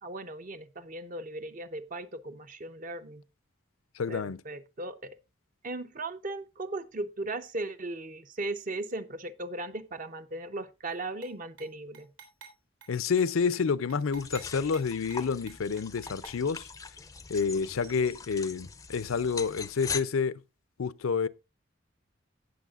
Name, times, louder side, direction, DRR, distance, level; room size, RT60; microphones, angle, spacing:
voice 1, 0.0-3.2 4.1-5.2 5.6-12.1, right 2 dB, 40° right, 0.7 m, -37 dB
voice 2, 4.0-4.4 12.9-16.7 17.3-20.4 20.8-21.3, left 5 dB, 80° left, 0.5 m, -29 dB
sound 1, 10.9-11.3 11.6-11.7 11.9-12.5 12.8-12.9 13.2-13.6 13.9-16.4 17.8-18.1, right 6 dB, 65° right, 3.4 m, -51 dB
sound 2, 14.1-20.0, left 5 dB, 15° left, 0.5 m, -41 dB
17.5 x 6.3 x 2.4 m
head